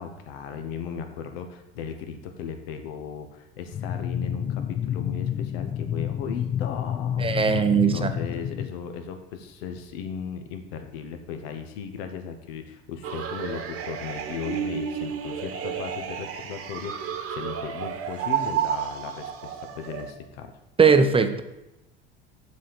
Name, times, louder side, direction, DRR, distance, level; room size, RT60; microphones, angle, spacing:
voice 1, 0.0-7.3 7.7-20.5, left 7 dB, 75° left, 7 dB, 0.9 m, -36 dB
sound 1, 3.7-8.7, left 9 dB, 25° left, 0.4 m, -29 dB
voice 2, 7.2-8.1 20.8-21.4, right 5 dB, 15° right, 8 dB, 0.7 m, -19 dB
sound 2, 13.0-20.1, right 9 dB, 45° right, 1.0 m, -31 dB
7.3 x 4.2 x 6.8 m, 0.95 s
hypercardioid pair, 80°, 31 cm